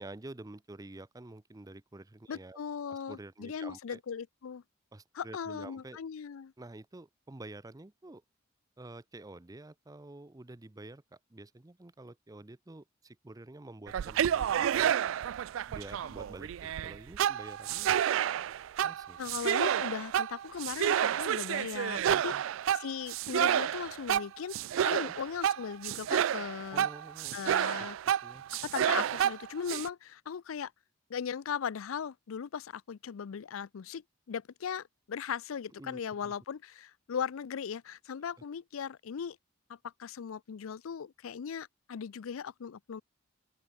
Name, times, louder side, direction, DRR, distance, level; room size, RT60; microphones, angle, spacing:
voice 1, 0.0-2.6 2.9-4.0 4.9-6.0 6.6-8.2 8.8-15.0 15.7-17.9 18.8-19.2 22.0-22.4 24.7-25.1 26.7-27.3 28.1-28.4 35.8-36.3, right 2 dB, 15° right, 0.6 m, -49 dB
voice 2, 2.3-4.6 5.1-6.5 19.2-22.4 22.7-24.6 24.8-26.9 27.3-28.0 28.6-30.7 31.1-39.4 39.7-43.0, left 7 dB, 85° left, 0.4 m, -38 dB
sound 1, 13.9-29.9, right 10 dB, 70° right, 0.3 m, -30 dB
open air
head